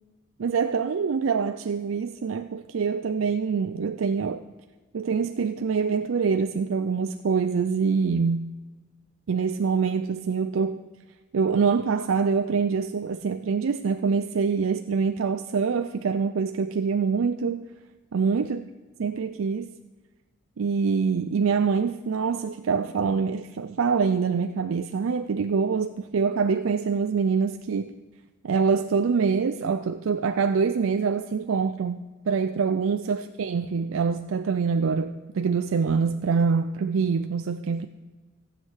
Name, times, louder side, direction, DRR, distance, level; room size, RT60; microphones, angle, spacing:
voice 1, 0.4-4.4 4.9-8.5 9.3-10.8 11.3-17.6 18.1-18.6 19.0-19.7 20.6-27.9 28.4-32.0 32.3-37.9, right 5 dB, 80° right, 9 dB, 0.4 m, -25 dB
14.5 x 7.5 x 6.4 m, 1.3 s
head